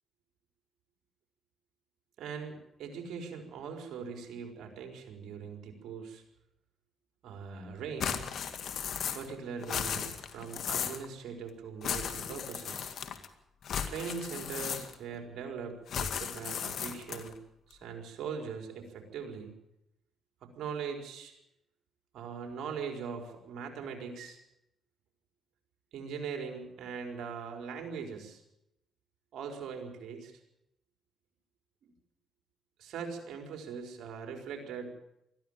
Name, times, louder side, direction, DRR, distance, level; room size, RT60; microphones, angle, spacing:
voice 1, 2.2-6.2 7.2-8.2 9.1-12.9 13.9-17.4 17.7-19.5 20.6-21.3 22.1-24.4 25.9-28.4 29.3-30.3 32.8-34.9, right 6 dB, 70° right, 3 dB, 4.7 m, -41 dB
sound 1, 8.0-9.3 9.6-11.1 11.8-13.3 13.6-15.1 15.9-17.3, left 8 dB, 65° left, 2.1 m, -36 dB
20.5 x 14.0 x 8.9 m, 0.82 s
cardioid pair, 90°, 0 cm